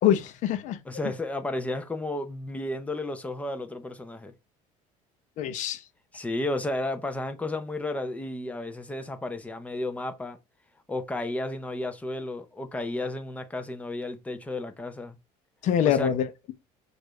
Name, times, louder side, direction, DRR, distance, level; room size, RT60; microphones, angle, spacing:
voice 1, 0.0-0.8 5.4-5.8 15.6-16.5, left 10 dB, 55° left, 0.8 m, -25 dB
voice 2, 0.8-4.3 6.1-10.4 10.9-15.2 15.8-16.1, left 2 dB, 10° left, 0.6 m, -33 dB
6.5 x 2.6 x 3.1 m
cardioid pair, 140°, 15 cm